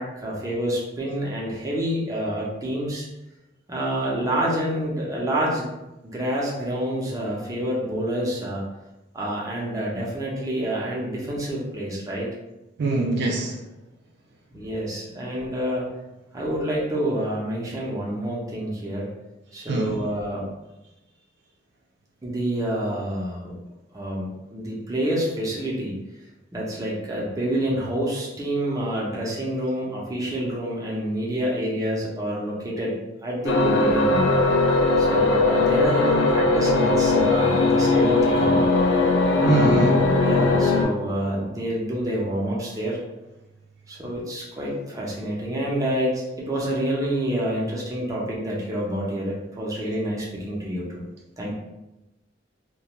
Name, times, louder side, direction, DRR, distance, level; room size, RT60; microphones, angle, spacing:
voice 1, 0.0-3.1 3.7-5.7 6.0-8.6 9.1-12.3 14.5-15.8 16.3-19.1 19.5-20.4 22.2-23.6 23.9-25.9 26.5-34.4 35.0-38.6 39.4-43.0 43.9-51.0 51.4-51.5, right 1 dB, 20° right, -5 dB, 0.6 m, -28 dB
voice 2, 12.8-13.6 19.7-20.1 39.4-40.0, right 2 dB, 60° right, 1 dB, 0.3 m, -23 dB
sound 1, 33.5-40.8, left 2 dB, 80° left, 0.4 m, -19 dB
2.4 x 2.2 x 3.0 m, 0.98 s
head